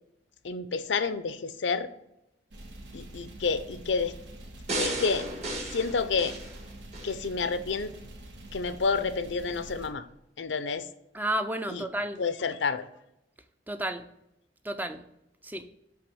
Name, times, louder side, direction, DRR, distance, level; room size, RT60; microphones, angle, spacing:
voice 1, 0.4-1.9 2.9-4.1 4.8-5.3 5.7-6.4 7.0-7.9 8.5-10.0 10.4-10.8 11.7-11.8 12.2-12.9, left 4 dB, 85° left, 12 dB, 0.6 m, -29 dB
sound 1, 2.5-9.9, right 1 dB, 80° right, 1.3 m, -46 dB
sound 2, 4.7-7.2 7.7-7.8, right 1 dB, 40° right, 1.6 m, -34 dB
voice 2, 11.1-12.2 13.7-14.1 14.6-15.1 15.4-15.7, right 1 dB, 10° right, 8 dB, 0.5 m, -32 dB
8.0 x 3.4 x 6.1 m, 0.84 s
head